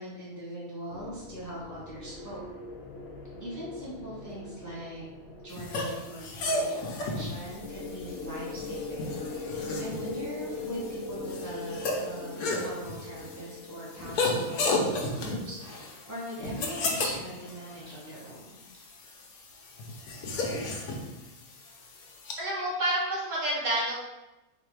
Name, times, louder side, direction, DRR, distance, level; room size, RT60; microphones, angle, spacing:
voice 1, 0.0-2.4 3.4-5.0 5.4-9.1 9.8-18.6, equal, 15° left, -7 dB, 0.9 m, -41 dB
sound 1, 0.9-14.7, left 2 dB, 60° left, 0.7 m, -41 dB
sound 2, 5.5-22.3, left 2 dB, 75° left, 1.2 m, -34 dB
voice 2, 22.4-24.0, right 1 dB, 60° right, -5 dB, 1.5 m, -29 dB
4.0 x 2.8 x 4.6 m, 1.0 s
omnidirectional pair, 1.6 m